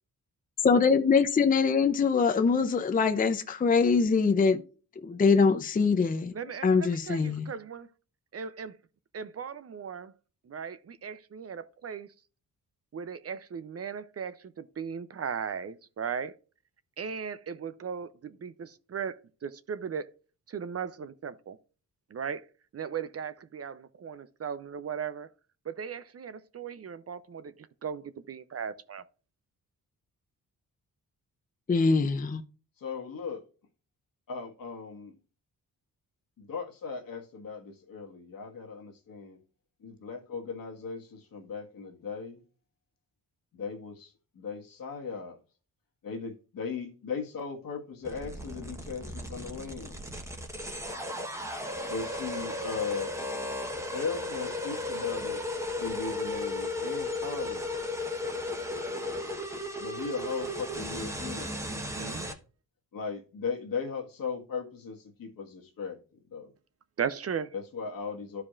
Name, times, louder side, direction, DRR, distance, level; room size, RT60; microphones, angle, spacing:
voice 1, 0.6-4.6 5.0-6.3 6.6-7.4 31.7-32.4, left 5 dB, 25° left, 0.5 m, -23 dB
voice 2, 6.3-7.8 8.3-8.8 9.1-10.1 10.4-12.1 12.9-16.4 17.0-20.1 20.5-21.6 22.1-22.5 22.7-25.3 25.6-29.0 61.6-62.3 67.0-67.5, right 7 dB, 45° right, 0.6 m, -37 dB
voice 3, 32.8-33.4 34.3-35.2 36.4-39.4 39.8-42.4 43.5-45.4 46.0-50.0 51.9-53.1 53.9-55.4 55.8-57.6 59.8-61.6 62.9-66.0 66.3-66.5 67.5-68.4, left 5 dB, 70° left, 1.6 m, -37 dB
sound 1, 48.0-62.3, left 1 dB, 10° right, 1.1 m, -35 dB
12.5 x 4.8 x 2.4 m
cardioid pair, 95°, 35 cm